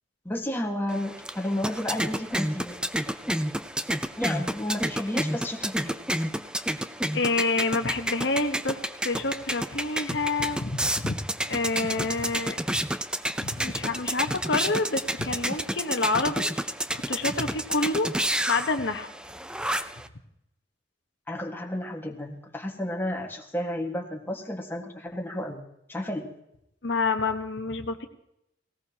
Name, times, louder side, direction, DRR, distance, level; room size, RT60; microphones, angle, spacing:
voice 1, 0.2-3.3 4.2-6.0 21.3-25.6 25.9-26.3, left 1 dB, 10° left, 1 dB, 1.7 m, -32 dB
sound 1, 0.9-20.1, right 1 dB, 5° right, 0.6 m, -30 dB
voice 2, 7.1-11.2 11.5-12.8 13.4-16.7 16.9-18.1 18.5-19.1 26.8-28.1, left 3 dB, 70° left, 6 dB, 1.2 m, -28 dB
19.0 x 18.0 x 2.9 m, 0.81 s
head